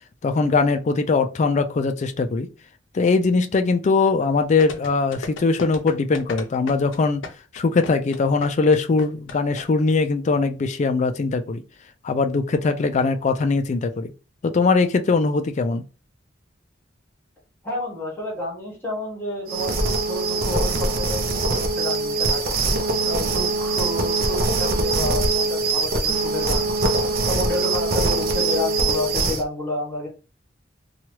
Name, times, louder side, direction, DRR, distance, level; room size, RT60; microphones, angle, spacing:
voice 1, 0.2-2.5 2.9-7.2 7.5-11.6 12.0-14.1 14.4-15.8, left 4 dB, 40° left, 0.3 m, -21 dB
sound 1, 4.6-9.6 9.9-10.0, left 3 dB, 85° left, 0.6 m, -35 dB
voice 2, 17.6-22.6 23.0-26.7 27.3-30.1, left 1 dB, 10° left, 1.2 m, -30 dB
sound 2, 19.5-29.4, right 2 dB, 50° right, 0.5 m, -22 dB
2.9 x 2.3 x 3.0 m
head